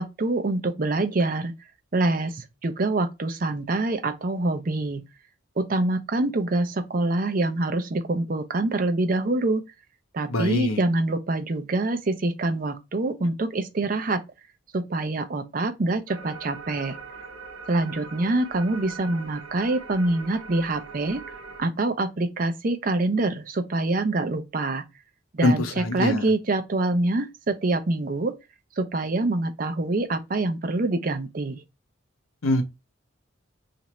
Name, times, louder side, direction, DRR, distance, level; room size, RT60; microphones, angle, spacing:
voice 1, 0.0-1.5 1.9-5.0 5.6-9.6 10.1-14.2 14.7-17.0 17.7-21.2 21.6-24.8 25.3-28.3 28.8-31.6, right 2 dB, 40° right, 0.5 m, -25 dB
voice 2, 10.3-10.8 25.4-26.3 32.4-32.6, left 2 dB, 90° left, 0.7 m, -23 dB
sound 1, 16.1-21.6, right 4 dB, 80° right, 0.8 m, -41 dB
3.0 x 2.5 x 4.2 m
head